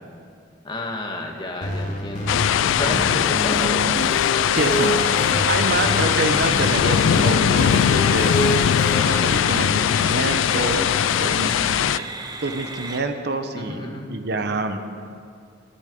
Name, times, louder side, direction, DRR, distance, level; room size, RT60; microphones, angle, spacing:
voice 1, 0.6-2.4 2.7-4.0 13.5-14.1, left 1 dB, 25° left, 1 dB, 1.5 m, -31 dB
sound 1, 1.6-9.0, equal, 40° left, 2.1 m, -27 dB
sound 2, 2.3-12.0, left 9 dB, 75° left, 0.3 m, -20 dB
voice 2, 4.5-8.7 9.0-11.9 12.4-13.8 14.1-14.8, right 2 dB, 55° right, 7 dB, 0.9 m, -27 dB
sound 3, 5.0-13.0, right 3 dB, 20° right, 0.8 m, -35 dB
12.5 x 10.0 x 7.8 m, 2.4 s
head